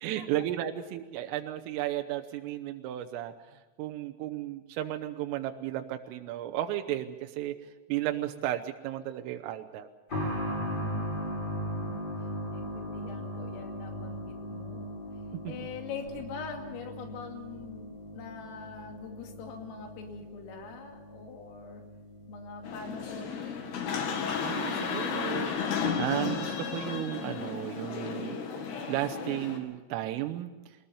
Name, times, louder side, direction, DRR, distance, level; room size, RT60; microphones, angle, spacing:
voice 1, 0.0-7.6 7.9-9.9 15.5-15.6 24.4-25.5 26.0-28.4 28.9-30.5, right 13 dB, 85° right, 7 dB, 3.5 m, -34 dB
sound 1, 10.1-24.5 24.8-24.9 25.9-26.0, equal, 25° left, 5.7 m, -38 dB
voice 2, 10.8-12.1 12.5-14.9 15.5-21.8 22.3-23.8, left 5 dB, 90° left, 3 dB, 5.1 m, -44 dB
sound 2, 22.6-29.6, left 6 dB, 60° left, 3.8 m, -33 dB
22.5 x 20.0 x 7.0 m, 1.1 s
omnidirectional pair, 5.8 m